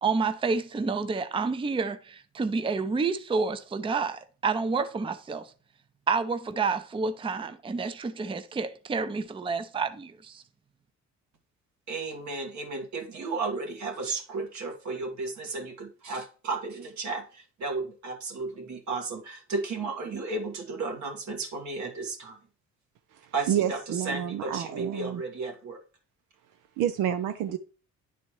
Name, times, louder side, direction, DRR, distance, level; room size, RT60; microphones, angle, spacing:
voice 1, 0.0-5.5 6.1-10.4, right 4 dB, 15° right, 0.5 m, -29 dB
voice 2, 11.9-22.4 23.3-25.8, right 3 dB, 65° right, 1.7 m, -34 dB
voice 3, 23.1-25.2 26.8-27.6, right 10 dB, 85° right, 0.6 m, -29 dB
9.9 x 4.1 x 3.1 m
cardioid pair, 90°, 30 cm